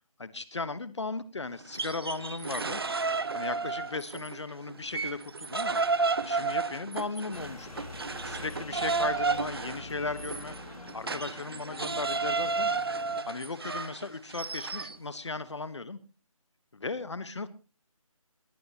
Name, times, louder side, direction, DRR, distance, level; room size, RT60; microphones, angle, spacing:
voice 1, 0.2-2.8 3.3-5.8 6.2-7.9 8.2-10.6 10.9-12.7 13.3-16.0 16.7-17.5, left 3 dB, 55° left, 14 dB, 1.2 m, -36 dB
sound 1, 1.6-4.4 4.7-15.0, right 4 dB, 45° right, 1.1 m, -32 dB
sound 2, 7.3-13.2, left 2 dB, 90° left, 2.4 m, -45 dB
20.0 x 18.5 x 2.9 m, 0.34 s
figure-of-eight pair, 170°, 18 cm